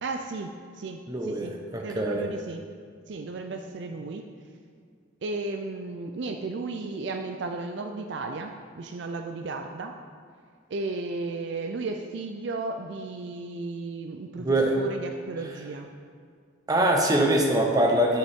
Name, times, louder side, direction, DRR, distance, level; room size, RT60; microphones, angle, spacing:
voice 1, 0.0-1.5 1.8-2.6 3.1-4.3 5.2-10.0 10.7-15.9, right 3 dB, 60° right, 5 dB, 0.4 m, -34 dB
voice 2, 1.1-2.3 14.4-14.8 15.4-15.5 16.7-18.2, right 1 dB, 20° right, 0 dB, 0.9 m, -23 dB
10.5 x 6.8 x 3.6 m, 2.1 s
head